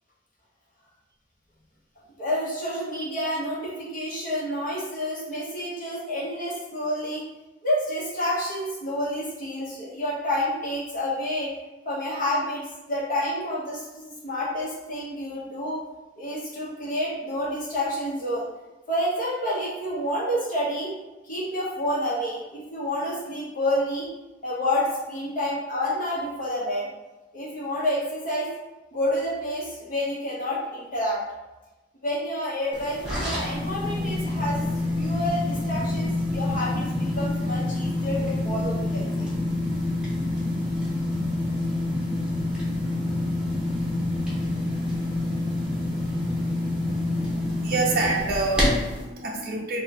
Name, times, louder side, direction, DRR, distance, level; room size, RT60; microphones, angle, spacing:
voice 1, 2.2-7.3 7.6-11.5 11.8-15.8 16.2-18.5 18.9-20.9 21.2-24.1 24.4-26.9 27.3-28.5 28.9-31.2 32.0-34.6 35.0-39.3, left 1 dB, 50° left, -5 dB, 1.1 m, -29 dB
sound 1, 32.7-49.0, left 1 dB, 5° right, 0.9 m, -27 dB
voice 2, 47.1-49.8, right 2 dB, 55° right, -2 dB, 0.5 m, -27 dB
3.7 x 2.3 x 4.1 m, 1.1 s
head